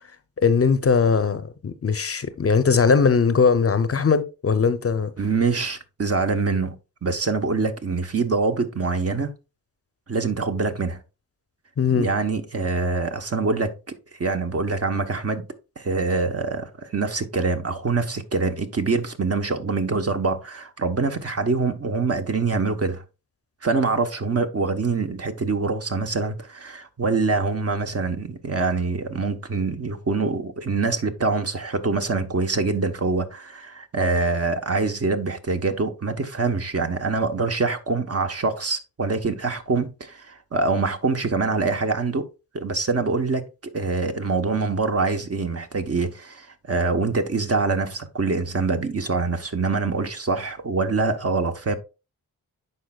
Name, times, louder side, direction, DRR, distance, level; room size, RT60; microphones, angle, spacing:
voice 1, 0.4-5.1 11.8-12.1, left 5 dB, 40° left, 0.7 m, -20 dB
voice 2, 5.2-9.3 10.1-11.0 11.9-15.5 15.8-23.0 23.6-42.3 42.5-51.8, right 4 dB, 40° right, 1.1 m, -25 dB
11.0 x 4.3 x 2.3 m
cardioid pair, 50°, 36 cm